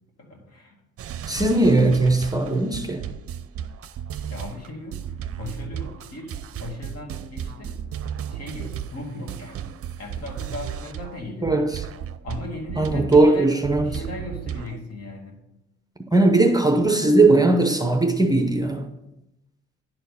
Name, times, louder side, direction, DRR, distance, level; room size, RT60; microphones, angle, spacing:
voice 1, 0.2-0.8 4.3-7.8 8.3-9.7 10.0-11.6 12.2-15.4, left 2 dB, 55° left, 2.4 m, -37 dB
sound 1, 1.0-11.2 11.5-14.8, right 9 dB, 50° right, 0.6 m, -34 dB
voice 2, 1.3-3.1 11.4-11.9 12.8-14.0 16.1-18.9, right 2 dB, 15° right, 0.7 m, -19 dB
10.5 x 4.5 x 5.5 m
cardioid pair, 90°, 30 cm